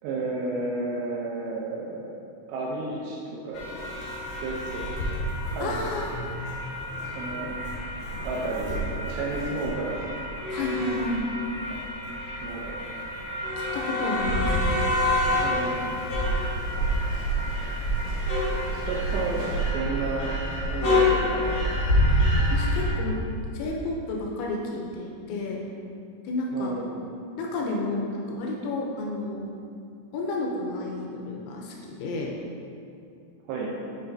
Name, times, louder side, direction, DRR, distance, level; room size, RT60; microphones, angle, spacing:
voice 1, 0.0-2.2 2.5-3.2 3.4-3.8 4.4-4.8 5.1-5.9 7.0-7.6 8.2-10.0 11.7-11.8 12.4-12.8 15.4-15.9 18.7-19.4 19.7-20.3 20.7-21.6 26.5-27.0 33.5-33.7, right 3 dB, 80° right, -4 dB, 2.6 m, -32 dB
sound 1, 3.5-22.9, left 1 dB, 60° left, 2.1 m, -27 dB
voice 2, 5.6-6.1 10.5-11.2 13.6-14.6 22.5-23.2 23.5-25.6 26.2-26.7 27.4-29.5 30.1-32.3, left 2 dB, 80° left, -1 dB, 2.9 m, -31 dB
sound 2, 14.5-19.7, equal, 60° right, 2.5 m, -41 dB
7.9 x 6.0 x 2.7 m, 2.5 s
omnidirectional pair, 5.6 m